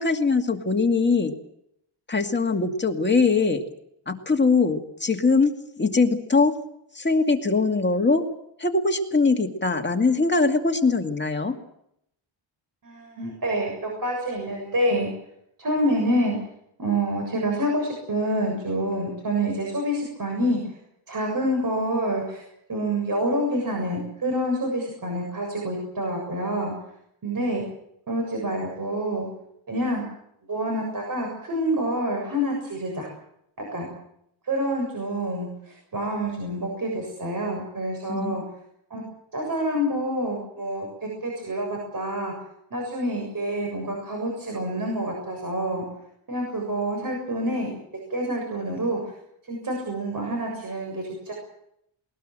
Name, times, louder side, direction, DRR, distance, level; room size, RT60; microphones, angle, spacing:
voice 1, 0.0-1.3 2.1-3.6 4.1-6.6 6.9-8.3 8.6-11.5 38.1-38.4, left 4 dB, 20° left, 3 dB, 2.4 m, -22 dB
voice 2, 12.8-15.1 15.6-16.4 16.8-20.6 21.1-26.7 27.2-27.6 28.1-29.3 29.7-30.0 30.5-33.1 33.6-33.9 34.4-38.4 38.9-39.0 39.3-42.3 42.7-45.8 46.3-47.8 48.1-49.1 49.5-51.3, right 1 dB, 40° right, 1 dB, 7.2 m, -27 dB
20.5 x 20.5 x 7.8 m, 0.75 s
wide cardioid pair, 115°, 50 cm